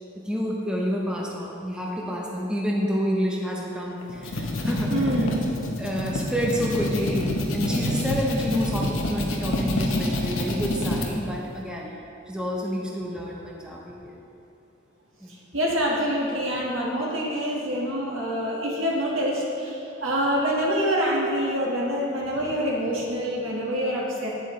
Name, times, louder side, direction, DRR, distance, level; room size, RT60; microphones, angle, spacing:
voice 1, 0.2-5.1 5.8-12.0 12.3-14.2 15.2-15.3, equal, 5° right, -3 dB, 0.6 m, -29 dB
sound 1, 4.0-11.1, left 1 dB, 75° left, 0.9 m, -27 dB
voice 2, 4.9-5.4 15.3-24.3, equal, 80° right, -3 dB, 1.6 m, -26 dB
8.3 x 7.9 x 3.2 m, 2.7 s
head